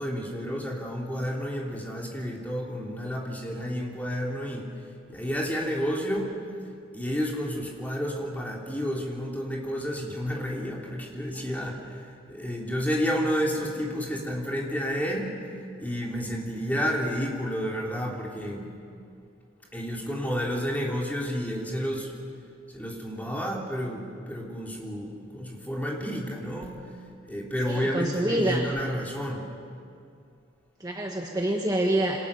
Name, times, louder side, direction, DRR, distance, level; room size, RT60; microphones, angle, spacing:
voice 1, 0.0-4.7 5.1-6.3 6.9-15.3 15.8-18.7 19.7-22.1 22.7-26.8 27.2-29.4, equal, 10° left, -2 dB, 3.4 m, -30 dB
voice 2, 27.6-28.7 30.8-32.2, right 1 dB, 20° right, 0 dB, 1.6 m, -26 dB
28.0 x 26.0 x 7.0 m, 2.4 s
head